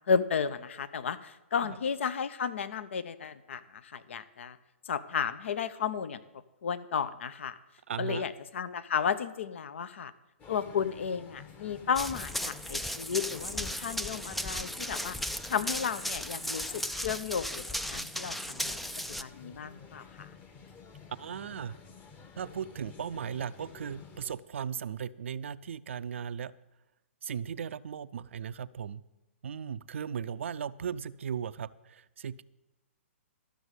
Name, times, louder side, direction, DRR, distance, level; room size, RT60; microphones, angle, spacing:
voice 1, 0.1-4.6 4.9-6.2 6.6-7.6 8.0-10.1 10.5-15.2 15.5-17.6 17.9-18.9 19.2-20.3, left 6 dB, 65° left, 13 dB, 0.8 m, -33 dB
voice 2, 7.9-8.2 21.1-21.8 22.4-26.5 27.2-29.0 29.4-32.4, right 7 dB, 65° right, 14 dB, 0.5 m, -37 dB
sound 1, 10.4-24.4, left 5 dB, 20° left, 1.1 m, -51 dB
Run, 12.0-19.2, equal, ahead, 0.3 m, -36 dB
12.5 x 6.3 x 8.1 m, 0.96 s
hypercardioid pair, 130°, 7 cm